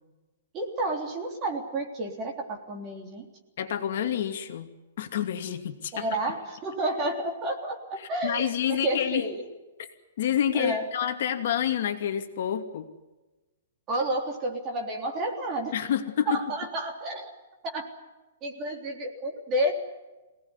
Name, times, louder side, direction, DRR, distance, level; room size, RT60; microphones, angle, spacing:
voice 1, 0.5-3.3 5.9-9.4 10.5-10.9 13.9-15.7 16.3-17.3 17.7-17.9 18.4-19.7, right 1 dB, 20° right, 1 dB, 3.5 m, -30 dB
voice 2, 3.6-4.7 5.0-6.1 8.0-9.3 9.8-9.9 10.2-12.9 15.7-16.4, left 9 dB, 50° left, 5 dB, 2.6 m, -28 dB
26.5 x 18.5 x 9.8 m, 1.1 s
hypercardioid pair, 175°, 0 cm